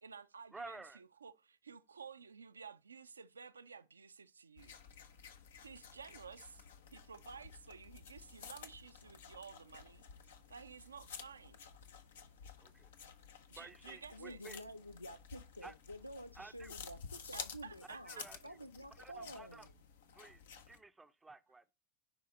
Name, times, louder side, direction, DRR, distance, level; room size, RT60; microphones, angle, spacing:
voice 1, 0.0-4.7 5.6-6.7 6.9-11.7 13.5-14.4 17.3-18.3, right 6 dB, 75° right, 0.4 m, -53 dB
voice 2, 0.5-1.0 12.6-12.9 13.5-14.6 15.6-15.7 16.4-16.7 18.1-18.6 19.0-19.7 20.1-21.7, right 3 dB, 10° right, 0.5 m, -53 dB
sound 1, 4.6-20.8, left 6 dB, 65° left, 0.8 m, -53 dB
voice 3, 14.1-19.7, equal, 90° left, 0.3 m, -50 dB
10.0 x 4.0 x 3.9 m
figure-of-eight pair, 80°, 0 cm